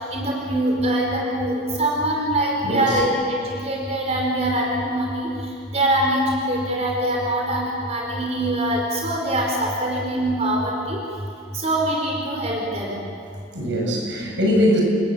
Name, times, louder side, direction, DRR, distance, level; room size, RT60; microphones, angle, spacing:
voice 1, 0.1-5.3 5.7-11.0 11.6-13.0, right 1 dB, 40° right, -1 dB, 4.7 m, -23 dB
voice 2, 2.6-3.0 13.5-14.8, equal, 80° right, 0 dB, 7.5 m, -21 dB
29.0 x 22.0 x 8.9 m, 2.5 s
head